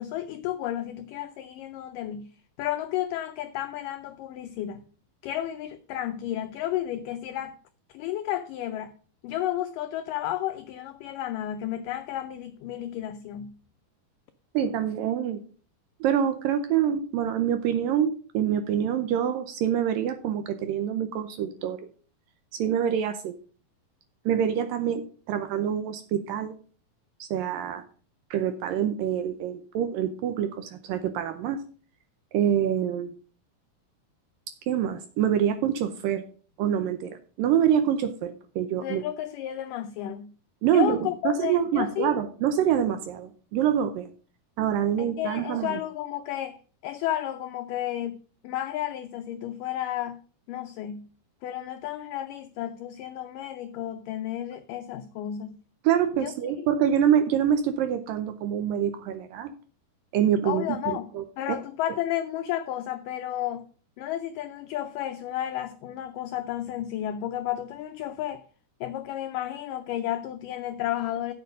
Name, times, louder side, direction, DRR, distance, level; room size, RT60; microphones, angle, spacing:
voice 1, 0.0-2.3 2.6-4.8 5.2-7.6 7.9-8.9 9.2-13.6 38.8-40.3 40.7-42.2 45.0-46.6 46.8-48.2 48.4-50.2 50.5-51.1 51.4-55.6 56.2-56.3 60.4-61.1 61.4-63.7 64.0-68.4 68.8-71.3, left 12 dB, 90° left, 1.9 m, -32 dB
voice 2, 14.5-15.4 16.0-21.8 22.5-23.4 24.3-26.5 27.2-27.8 28.3-31.6 32.3-33.1 34.7-36.2 36.6-39.0 40.6-44.1 44.6-45.8 55.8-59.5 60.1-61.6, right 9 dB, 75° right, 2.2 m, -26 dB
7.9 x 7.9 x 5.3 m
omnidirectional pair, 4.5 m